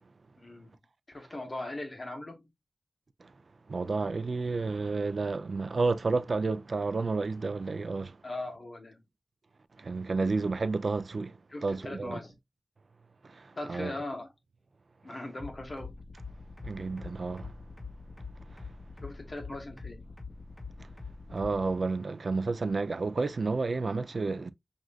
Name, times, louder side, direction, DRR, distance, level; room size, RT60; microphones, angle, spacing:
voice 1, 0.4-0.8 1.1-2.5 8.2-9.0 11.5-12.3 13.5-14.3 15.0-15.9 19.0-20.1, left 2 dB, 45° left, 1.4 m, -39 dB
voice 2, 3.7-8.2 9.8-12.2 13.2-13.9 15.1-15.2 16.6-17.6 18.5-18.7 20.8-20.9 21.3-24.5, right 3 dB, 65° right, 0.5 m, -31 dB
sound 1, 15.4-21.7, left 4 dB, 25° left, 2.1 m, -44 dB
6.1 x 2.6 x 2.3 m
wide cardioid pair, 85°, 0 cm